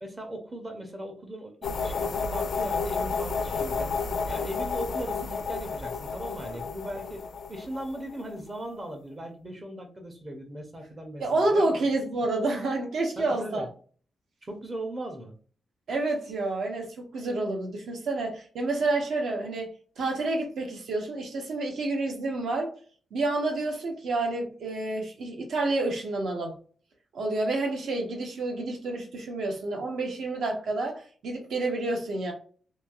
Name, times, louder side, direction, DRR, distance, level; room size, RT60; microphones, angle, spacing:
voice 1, 0.0-3.9 4.2-7.2 7.5-11.8 13.2-13.7 14.4-15.3, right 1 dB, 20° right, 0.5 m, -38 dB
sound 1, 1.6-8.5, left 4 dB, 60° left, 0.4 m, -31 dB
voice 2, 11.2-13.7 15.9-22.7 23.1-26.6 27.1-32.3, right 2 dB, 70° right, 0.7 m, -29 dB
3.1 x 2.6 x 2.3 m
wide cardioid pair, 165°, 0 cm